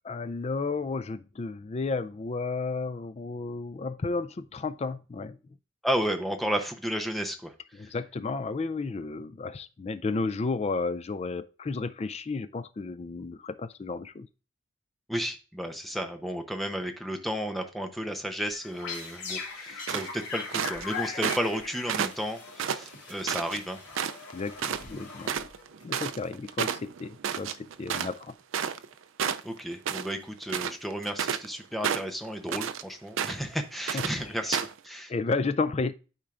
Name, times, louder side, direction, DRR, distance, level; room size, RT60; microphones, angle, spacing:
voice 1, 0.0-5.4 7.7-14.3 24.3-25.4 25.8-28.3 33.9-34.4 35.1-35.9, left 3 dB, 30° left, 0.3 m, -32 dB
voice 2, 5.8-7.5 7.8-7.9 15.1-23.8 29.4-34.6 34.8-35.1, equal, ahead, 0.7 m, -32 dB
sound 1, 18.5-25.8, left 5 dB, 85° left, 3.1 m, -40 dB
sound 2, 19.9-20.9 21.2-21.6 21.9-23.6 23.9-24.3 24.6-24.8 25.1-28.9 29.2-30.1 30.4-31.5 31.8-32.8 33.2-33.5 33.9-34.1 34.5-34.8, right 8 dB, 70° right, 0.4 m, -31 dB
12.0 x 4.5 x 2.5 m
head